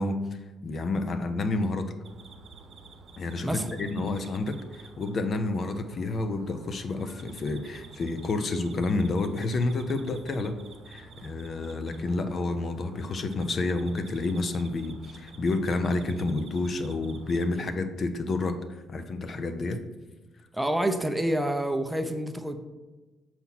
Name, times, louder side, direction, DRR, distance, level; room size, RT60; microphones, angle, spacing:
voice 1, 0.0-1.9 3.2-10.6 10.9-18.5 18.9-19.8, left 2 dB, 50° left, 8 dB, 0.6 m, -29 dB
sound 1, 2.0-17.5, right 3 dB, 60° right, 0.9 m, -50 dB
voice 2, 3.4-3.8 20.5-22.6, right 1 dB, 5° right, 7 dB, 0.6 m, -28 dB
7.1 x 4.3 x 4.1 m, 1.2 s
cardioid pair, 90°, 0 cm